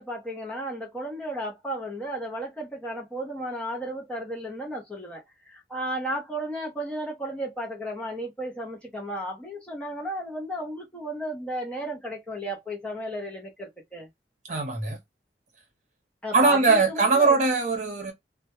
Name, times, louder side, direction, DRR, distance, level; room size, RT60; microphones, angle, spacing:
voice 1, 0.0-14.1 16.2-17.4, right 1 dB, 5° left, 0.6 m, -34 dB
voice 2, 14.5-15.0 16.3-18.1, right 4 dB, 45° right, 0.8 m, -21 dB
2.2 x 2.1 x 2.8 m
head